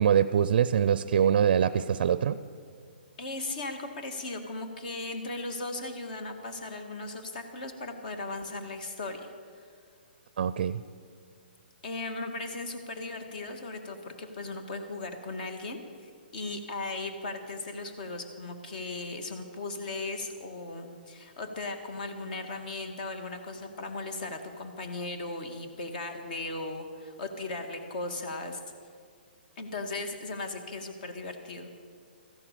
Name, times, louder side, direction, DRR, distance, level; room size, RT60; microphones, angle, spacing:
voice 1, 0.0-2.4 10.4-10.8, right 8 dB, 55° right, 15 dB, 0.4 m, -24 dB
voice 2, 3.2-9.3 9.6-9.7 11.8-28.6 29.6-31.7, left 2 dB, 55° left, 6 dB, 1.9 m, -37 dB
14.0 x 10.5 x 6.7 m, 2.1 s
hypercardioid pair, 140°, 6 cm